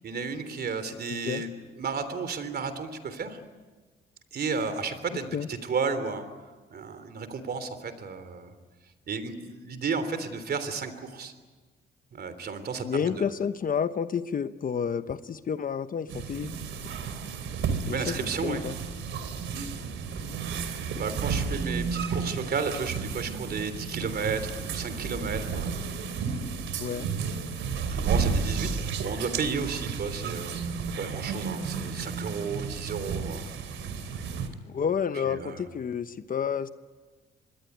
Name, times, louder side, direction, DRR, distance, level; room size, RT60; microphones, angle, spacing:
voice 1, 0.0-1.5 1.7-3.4 4.3-6.3 6.7-8.5 9.1-11.3 12.1-13.3 17.9-18.6 19.5-19.7 21.0-25.8 26.2-26.6 27.8-30.5 31.0-33.4 35.2-35.6, right 5 dB, 50° right, 11 dB, 3.4 m, -33 dB
voice 2, 12.8-16.5 17.9-18.7 26.8-27.1 34.7-36.7, left 7 dB, 45° left, 11 dB, 1.0 m, -30 dB
sound 1, 16.1-34.5, right 5 dB, 75° right, 3.1 m, -32 dB
26.0 x 20.5 x 9.4 m, 1.3 s
cardioid pair, 90°, 20 cm